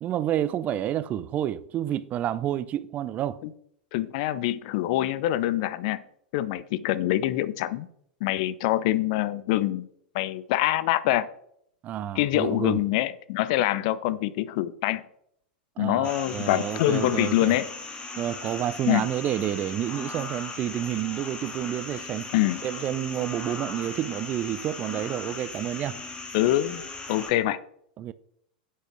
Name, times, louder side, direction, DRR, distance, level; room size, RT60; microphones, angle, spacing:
voice 1, 0.0-3.4 11.8-12.8 15.8-17.5 18.2-22.3 22.6-26.0 28.0-28.1, right 11 dB, 30° right, 0.5 m, -29 dB
voice 2, 3.9-6.0 6.3-7.9 8.2-9.9 10.1-11.3 12.1-15.0 15.8-17.6 18.9-19.1 22.3-22.6 26.3-26.8 27.1-27.6, left 14 dB, 50° left, 0.6 m, -25 dB
sound 1, 16.0-27.3, left 3 dB, 20° left, 1.9 m, -38 dB
7.7 x 6.4 x 5.9 m
figure-of-eight pair, 95°, 5 cm